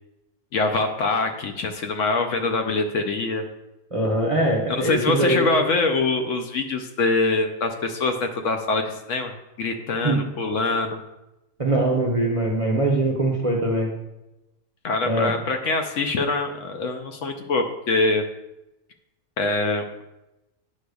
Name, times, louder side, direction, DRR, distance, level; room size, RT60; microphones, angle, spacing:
voice 1, 0.5-3.4 4.7-9.3 9.6-11.0 14.8-18.2 19.4-20.0, left 3 dB, 65° left, 5 dB, 0.9 m, -24 dB
voice 2, 3.9-5.5 10.0-10.2 11.6-13.9 15.0-15.3, right 1 dB, 30° right, -1 dB, 0.7 m, -22 dB
9.4 x 6.4 x 2.3 m, 0.95 s
omnidirectional pair, 1.5 m